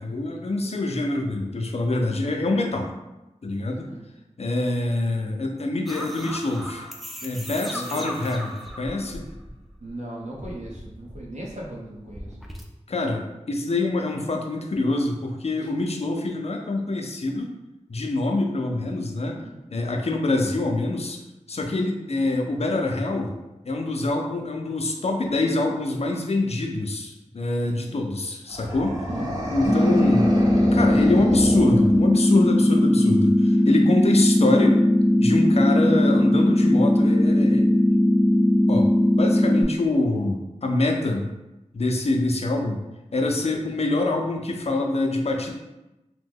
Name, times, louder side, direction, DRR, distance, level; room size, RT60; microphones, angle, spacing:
voice 1, 0.0-2.9 3.4-3.9 4.4-6.9 7.2-9.3 12.9-17.5 17.9-19.4 19.7-21.2 21.5-23.3 23.6-29.0 29.5-34.9 35.2-37.7 38.7-38.9 39.1-41.3 41.7-42.8 43.1-45.5, left 2 dB, 55° left, 2 dB, 0.5 m, -25 dB
voice 2, 2.2-2.6 3.7-4.0 7.7-8.2 9.8-12.4 15.6-15.7 19.3-19.6 27.6-28.0 29.7-30.0 43.6-43.8, right 1 dB, 70° right, -3 dB, 0.8 m, -38 dB
sound 1, 5.9-9.9 10.2-12.6, equal, ahead, 0.4 m, -38 dB
sound 2, 28.5-32.4, equal, 30° right, 0.9 m, -30 dB
sound 3, 29.6-39.6, left 1 dB, 15° left, 0.8 m, -19 dB
2.9 x 2.1 x 3.5 m, 0.97 s
wide cardioid pair, 50°, 12 cm